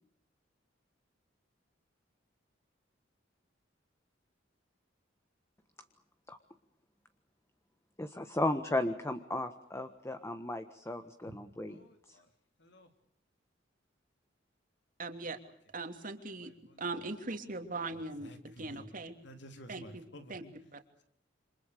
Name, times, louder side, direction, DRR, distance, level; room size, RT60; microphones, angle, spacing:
voice 1, 8.0-11.8 12.1-12.2, left 1 dB, 15° left, 9 dB, 1.5 m, -35 dB
voice 2, 11.7-12.3 12.6-12.9 16.4-16.8 18.2-18.9 19.2-20.5, equal, 65° left, 7 dB, 3.6 m, -52 dB
voice 3, 15.0-15.4 15.7-16.5 16.8-19.1 19.7-20.4 20.7-20.8, right 3 dB, 45° right, 7 dB, 3.0 m, -40 dB
28.5 x 26.5 x 6.8 m, 0.64 s
head